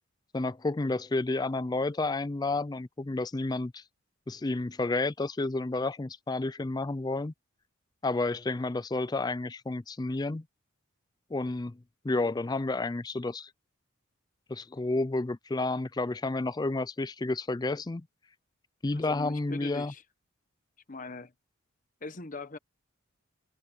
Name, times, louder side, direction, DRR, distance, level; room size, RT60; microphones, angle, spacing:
voice 1, 0.3-3.8 4.3-7.3 8.0-10.4 11.3-11.8 12.0-13.5 14.5-18.1 18.8-19.9, left 2 dB, 20° left, 0.4 m, -30 dB
voice 2, 18.9-20.0 20.9-21.3 22.0-22.6, left 3 dB, 40° left, 1.0 m, -41 dB
head